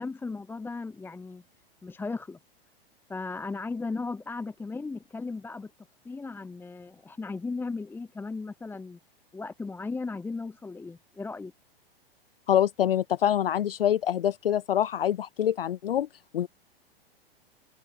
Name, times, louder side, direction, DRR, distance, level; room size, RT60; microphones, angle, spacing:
voice 1, 0.0-1.4 1.8-2.4 3.1-5.7 6.0-9.0 9.3-11.5, left 3 dB, 5° left, 0.9 m, -36 dB
voice 2, 12.5-16.1 16.3-16.5, left 10 dB, 70° left, 0.5 m, -25 dB
figure-of-eight pair, 100°, 30 cm